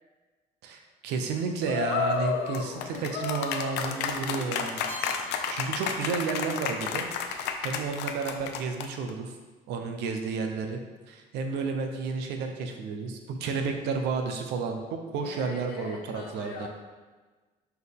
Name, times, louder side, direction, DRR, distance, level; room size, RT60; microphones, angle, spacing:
voice 1, 0.6-4.8 5.3-7.1 7.3-9.4 9.7-10.8 11.1-16.7, right 5 dB, 90° right, 5 dB, 0.8 m, -32 dB
sound 1, 1.7-9.1, left 6 dB, 85° left, 0.6 m, -31 dB
Keyboard (musical), 4.9-6.8, left 1 dB, 10° left, 1.4 m, -44 dB
voice 2, 15.2-16.7, left 5 dB, 65° left, 0 dB, 1.3 m, -42 dB
6.5 x 4.6 x 3.5 m, 1.3 s
cardioid pair, 110°, 17 cm